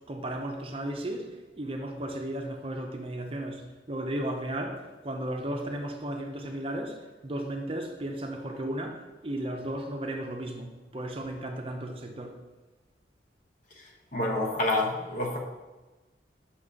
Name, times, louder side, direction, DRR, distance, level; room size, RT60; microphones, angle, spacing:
voice 1, 0.0-12.4, right 1 dB, 30° right, 3 dB, 0.6 m, -35 dB
voice 2, 14.1-15.4, left 2 dB, 45° left, 2 dB, 0.9 m, -27 dB
5.8 x 4.2 x 4.8 m, 1.2 s
head